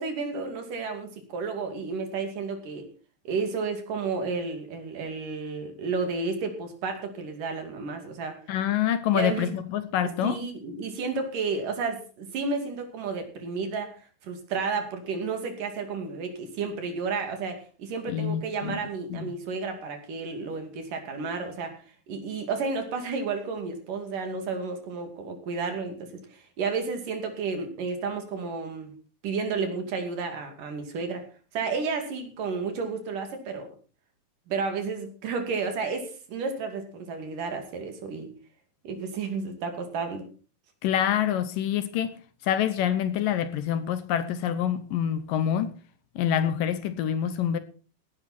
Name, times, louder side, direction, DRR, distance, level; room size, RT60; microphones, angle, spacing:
voice 1, 0.0-2.9 3.3-8.4 9.1-9.5 10.2-21.8 22.1-28.9 29.2-31.2 31.5-33.7 34.5-38.3 38.8-40.3, right 4 dB, 60° right, 4.0 m, -32 dB
voice 2, 8.5-10.4 18.1-18.8 19.1-19.3 40.8-45.8 46.2-47.6, left 10 dB, 70° left, 2.4 m, -26 dB
17.0 x 11.0 x 4.3 m
omnidirectional pair, 4.3 m